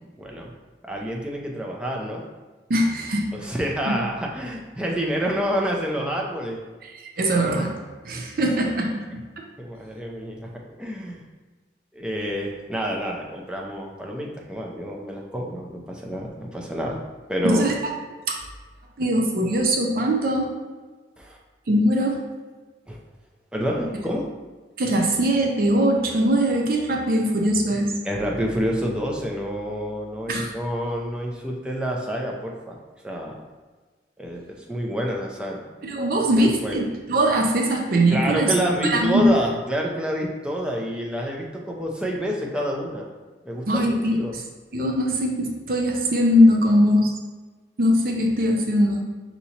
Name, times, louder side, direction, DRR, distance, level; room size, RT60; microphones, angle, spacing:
voice 1, 0.2-0.5 0.8-2.3 3.4-6.6 9.6-10.5 10.8-11.2 11.9-17.0 17.3-17.7 21.2-21.4 22.9-23.0 23.5-24.3 28.0-32.8 33.0-33.4 34.2-35.7 36.3-36.8 38.1-43.1 43.4-44.3, equal, 5° right, -1 dB, 0.5 m, -28 dB
voice 2, 2.7-3.3 3.9-4.0 7.2-7.8 8.0-9.2 17.4-17.7 18.3-18.4 19.0-20.5 21.7-22.2 24.8-28.0 30.3-30.5 35.8-38.5 38.8-39.3 43.7-44.4 44.7-47.1 47.8-49.0, equal, 55° right, 1 dB, 0.5 m, -21 dB
5.4 x 2.8 x 2.8 m, 1.3 s
head